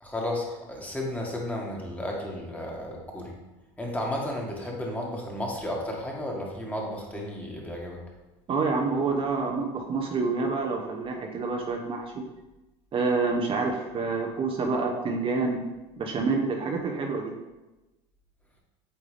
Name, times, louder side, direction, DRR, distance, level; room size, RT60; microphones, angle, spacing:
voice 1, 0.0-3.3 3.8-8.0, left 1 dB, 10° left, -1 dB, 1.6 m, -33 dB
voice 2, 8.5-12.2 12.9-15.6 16.0-17.3, right 4 dB, 35° right, 2 dB, 0.8 m, -27 dB
8.5 x 3.5 x 3.3 m, 1.1 s
supercardioid pair, 90°, 15 cm